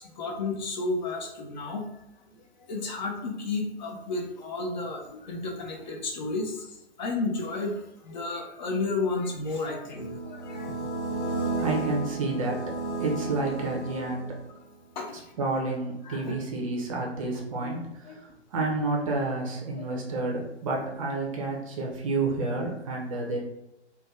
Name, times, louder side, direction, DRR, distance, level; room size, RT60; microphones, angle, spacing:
voice 1, 0.0-1.9 2.7-10.8 11.4-11.7 15.0-15.3 16.1-16.4 17.6-17.7 18.1-18.2 19.8-19.9, left 3 dB, 40° left, 1 dB, 0.5 m, -32 dB
sound 1, 9.9-14.6, right 3 dB, 80° left, 0.8 m, -33 dB
voice 2, 11.6-12.6 12.9-14.4 15.4-23.4, right 3 dB, 30° right, -1 dB, 0.5 m, -30 dB
2.5 x 2.2 x 3.2 m, 0.89 s
figure-of-eight pair, 120°, 34 cm